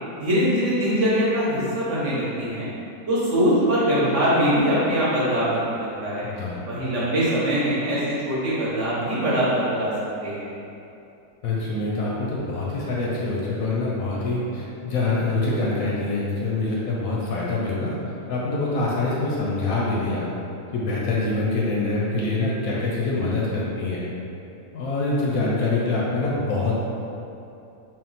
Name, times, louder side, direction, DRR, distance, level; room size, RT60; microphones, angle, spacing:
voice 1, 0.2-2.7 3.1-6.3 6.7-9.9 10.2-10.5, equal, 55° right, -9 dB, 1.1 m, -22 dB
voice 2, 6.2-6.6 11.4-18.0 18.3-20.3 20.7-24.1 24.7-26.7, left 2 dB, 70° left, -5 dB, 0.9 m, -25 dB
3.6 x 2.3 x 3.9 m, 2.8 s
omnidirectional pair, 1.7 m